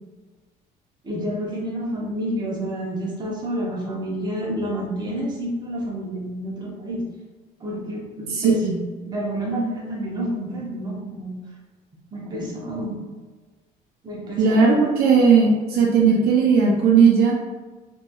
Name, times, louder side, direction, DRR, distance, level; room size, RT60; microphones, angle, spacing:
voice 1, 1.0-7.0 7.6-11.3 12.1-13.0 14.0-14.8, equal, 25° right, -3 dB, 0.8 m, -29 dB
voice 2, 8.3-8.8 14.4-17.3, right 5 dB, 70° right, -2 dB, 0.5 m, -17 dB
3.0 x 2.6 x 2.2 m, 1.3 s
cardioid pair, 110°, 17 cm